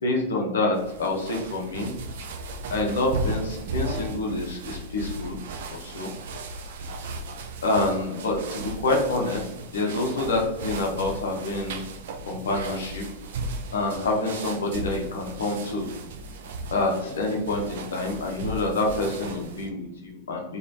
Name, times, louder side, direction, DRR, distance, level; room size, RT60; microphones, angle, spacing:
voice 1, 0.0-1.9 2.7-5.4 5.7-6.1 7.6-11.8 12.3-13.1 13.7-15.9 16.7-20.6, left 2 dB, 65° left, 1 dB, 0.5 m, -27 dB
sound 1, 0.7-19.7, right 3 dB, 60° right, 0.3 m, -36 dB
voice 2, 11.8-12.5 15.6-16.7 19.3-20.6, left 1 dB, 30° right, -4 dB, 1.0 m, -53 dB
3.0 x 2.3 x 2.6 m, 0.97 s
figure-of-eight pair, 90°, 0 cm